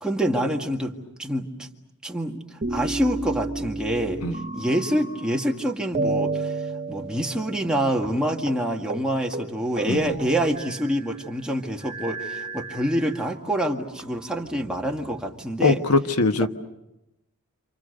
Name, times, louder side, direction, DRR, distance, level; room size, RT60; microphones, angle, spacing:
voice 1, 0.0-1.5 2.0-2.4 2.7-4.2 4.5-6.5 6.9-15.8, right 1 dB, 5° right, 0 dB, 2.0 m, -26 dB
sound 1, 2.6-5.6 5.9-7.8 8.0-8.1 8.5-8.6 8.9-9.1 9.3-11.1 11.8-13.4 14.1-15.0, right 2 dB, 30° right, 1.3 m, -32 dB
voice 2, 15.6-16.5, left 3 dB, 85° left, 7 dB, 1.3 m, -21 dB
28.5 x 28.0 x 6.6 m, 0.91 s
head